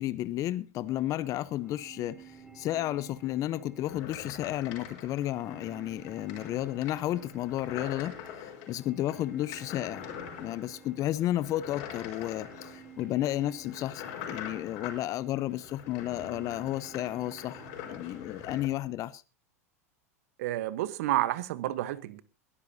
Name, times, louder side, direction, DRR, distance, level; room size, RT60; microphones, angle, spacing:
voice 1, 0.0-10.1 10.4-19.2, left 14 dB, 40° left, 0.8 m, -32 dB
sound 1, 0.9-18.8, right 6 dB, 10° right, 4.5 m, -54 dB
sound 2, 3.8-18.7, left 8 dB, 60° left, 5.0 m, -44 dB
voice 2, 20.4-22.2, right 15 dB, 65° right, 1.1 m, -30 dB
21.0 x 13.0 x 2.8 m
hypercardioid pair, 95°, 8 cm